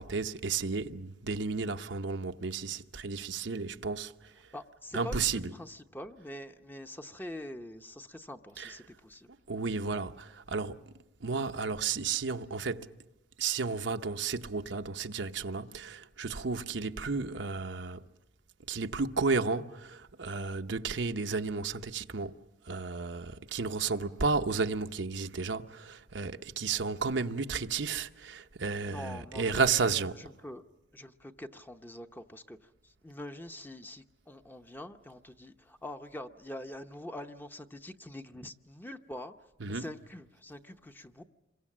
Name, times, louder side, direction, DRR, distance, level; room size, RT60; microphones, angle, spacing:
voice 1, 0.0-4.3 4.9-5.5 8.6-8.7 9.5-10.8 11.2-12.9 13.4-18.0 18.7-22.3 22.7-30.2 39.6-39.9, right 4 dB, 85° right, 0.8 m, -33 dB
voice 2, 4.5-9.3 23.8-24.1 28.8-30.6 30.9-32.6 32.8-39.3 39.7-41.2, left 1 dB, 10° left, 0.8 m, -45 dB
27.0 x 22.5 x 7.4 m
head